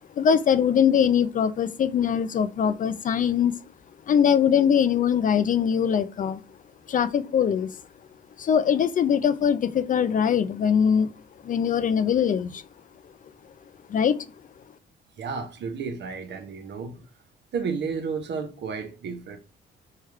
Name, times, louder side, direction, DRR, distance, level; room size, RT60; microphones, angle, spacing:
voice 1, 0.2-3.5 4.1-6.4 6.9-7.7 8.4-11.1 11.4-12.6 13.9-14.2, left 8 dB, 45° left, 0.4 m, -22 dB
voice 2, 15.2-17.0 17.5-19.4, right 5 dB, 60° right, 0.8 m, -32 dB
4.6 x 2.3 x 3.2 m
cardioid pair, 90°, 20 cm